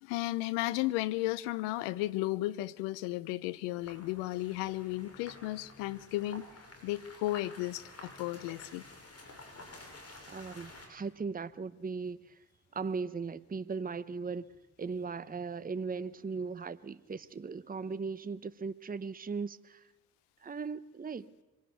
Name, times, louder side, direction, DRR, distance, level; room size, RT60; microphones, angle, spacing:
voice 1, 0.0-6.5 6.8-8.8, left 17 dB, 85° left, 0.8 m, -34 dB
sound 1, 3.8-10.9, left 2 dB, 35° left, 7.1 m, -51 dB
voice 2, 10.3-12.4 12.7-14.5 14.8-19.9 20.4-21.3, right 5 dB, 20° right, 0.9 m, -38 dB
25.5 x 17.0 x 9.3 m
hypercardioid pair, 50°, 40 cm